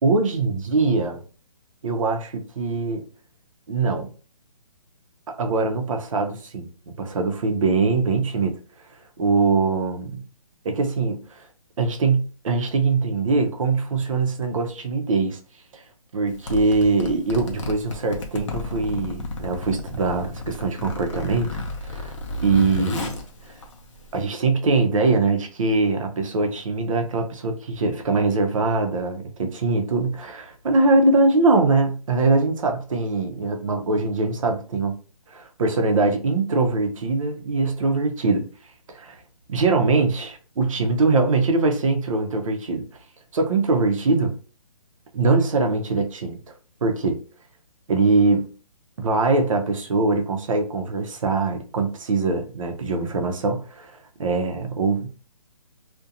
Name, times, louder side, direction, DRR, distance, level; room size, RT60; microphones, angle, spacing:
voice 1, 0.0-1.2 1.8-3.1 3.7-4.1 5.4-6.7 7.0-8.6 9.2-10.2 10.6-11.4 11.8-15.4 15.7-15.8 16.1-22.1 22.4-23.1 23.5-23.6 24.1-34.9 35.3-38.5 38.9-39.2 39.5-42.8 43.3-44.3 45.1-46.4 46.8-47.2 47.9-48.5 49.0-55.1, right 3 dB, 55° right, 0.6 m, -22 dB
Zipper (clothing), 16.3-24.3, left 2 dB, 50° left, 0.6 m, -33 dB
2.5 x 2.1 x 2.7 m
hypercardioid pair, 170°, 20 cm